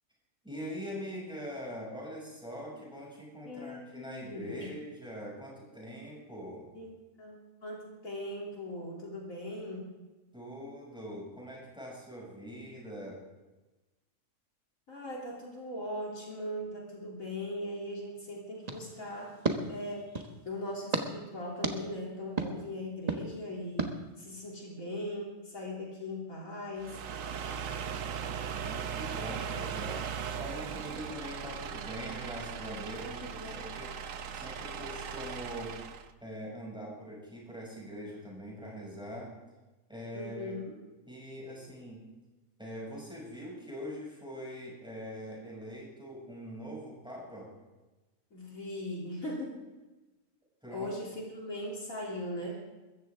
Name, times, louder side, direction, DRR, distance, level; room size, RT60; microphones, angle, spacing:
voice 1, 0.4-6.7 10.3-13.2 28.5-30.0 30.4-33.9 34.3-35.8 36.2-39.3 39.9-40.5 41.1-42.0 42.6-47.5 50.6-50.9, equal, 5° right, -4 dB, 6.6 m, -43 dB
voice 2, 3.5-4.7 6.7-9.9 14.9-19.3 19.7-20.1 20.5-27.0 33.0-33.8 40.1-40.8 41.5-41.6 48.3-49.6 50.7-52.6, left 1 dB, 65° left, -3 dB, 3.5 m, -39 dB
sound 1, 18.6-20.4 20.9-21.1 21.6-21.8 22.4-22.5 23.1-23.2 23.8-23.9, right 3 dB, 30° right, 1.3 m, -33 dB
sound 2, 26.8-36.1, right 7 dB, 65° right, 1.2 m, -38 dB
21.5 x 14.5 x 3.6 m, 1.1 s
omnidirectional pair, 1.5 m